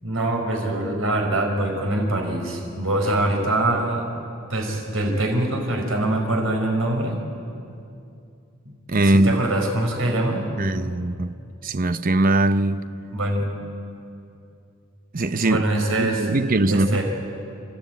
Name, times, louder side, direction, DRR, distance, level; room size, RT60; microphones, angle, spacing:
voice 1, 0.0-4.1 4.5-7.2 9.0-10.5 13.1-13.5 15.4-16.3 16.7-17.0, right 1 dB, 85° right, 5.0 m, -23 dB
voice 2, 8.9-9.4 10.6-11.3 11.6-12.8 15.1-15.6 16.0-17.0, right 2 dB, 45° right, 0.7 m, -21 dB
30.0 x 13.0 x 9.2 m
head